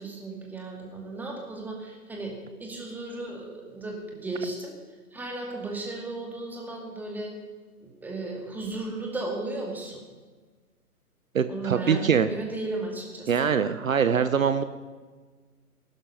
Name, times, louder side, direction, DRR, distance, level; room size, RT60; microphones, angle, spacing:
voice 1, 0.0-4.8 5.1-7.3 7.8-10.0 11.5-13.5, right 2 dB, 5° right, 0 dB, 2.1 m, -35 dB
voice 2, 11.3-12.3 13.3-14.6, right 7 dB, 60° right, 11 dB, 1.0 m, -23 dB
19.5 x 12.5 x 5.5 m, 1.4 s
figure-of-eight pair, 135°, 46 cm